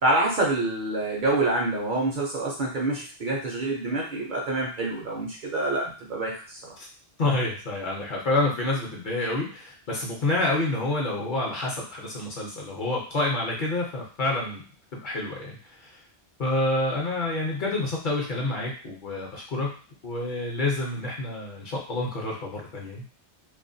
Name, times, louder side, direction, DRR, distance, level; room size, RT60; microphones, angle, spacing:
voice 1, 0.0-6.7, right 2 dB, 55° right, -2 dB, 0.6 m, -27 dB
voice 2, 7.2-14.6 14.9-15.9 16.4-19.7 20.0-23.0, left 2 dB, 55° left, -2 dB, 0.7 m, -28 dB
2.3 x 2.1 x 2.5 m, 0.39 s
omnidirectional pair, 1.1 m